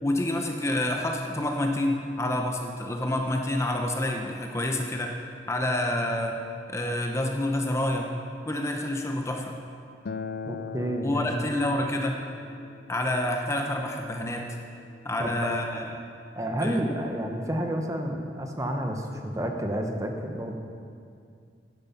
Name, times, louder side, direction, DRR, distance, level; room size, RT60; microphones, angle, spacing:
voice 1, 0.0-5.1 5.5-6.4 6.7-8.1 8.5-9.5 11.0-12.2 12.9-14.5 15.0-15.9 16.6-16.8, left 1 dB, 15° left, 2 dB, 0.7 m, -28 dB
Acoustic guitar, 10.1-15.3, left 5 dB, 60° left, 0.4 m, -41 dB
voice 2, 10.4-11.3 15.2-15.8 16.3-20.6, right 1 dB, 20° right, 3 dB, 0.9 m, -30 dB
11.0 x 11.0 x 5.8 m, 2.3 s
head